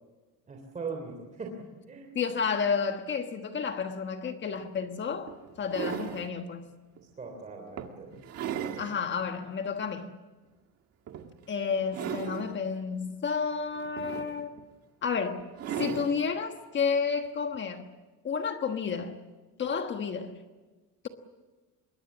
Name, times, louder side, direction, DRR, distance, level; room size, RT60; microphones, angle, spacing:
voice 1, 0.5-2.2 7.2-8.2, right 4 dB, 20° right, 3.2 m, -40 dB
voice 2, 2.1-6.6 8.8-10.2 11.5-14.5 15.0-15.5 15.8-17.9 18.2-19.2 19.6-20.4, left 5 dB, 30° left, 1.3 m, -31 dB
sound 1, 4.5-4.6 5.3-6.3 7.0-7.1 7.8-8.9 9.4-9.5 11.1-11.4 11.8-12.6 13.7-14.6 15.6-16.2 17.5-17.6, right 9 dB, 45° right, 1.7 m, -36 dB
26.0 x 22.5 x 7.3 m
cardioid pair, 175°, 35 cm